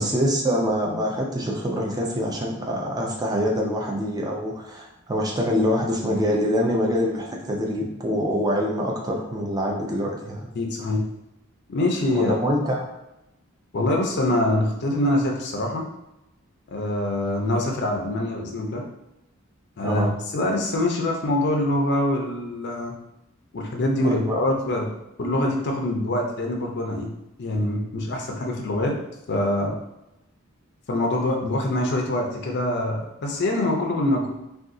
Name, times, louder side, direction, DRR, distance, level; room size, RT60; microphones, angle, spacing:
voice 1, 0.0-10.5 12.1-12.8 19.8-20.1 24.0-24.4, equal, 20° right, -1 dB, 0.5 m, -25 dB
voice 2, 10.6-11.0 11.7-12.3 13.7-15.8 16.7-18.8 19.8-22.9 23.5-24.9 25.2-27.1 27.4-28.9 29.3-29.7 30.9-34.3, left 1 dB, 55° left, 0 dB, 0.5 m, -24 dB
2.5 x 2.4 x 3.6 m, 0.90 s
head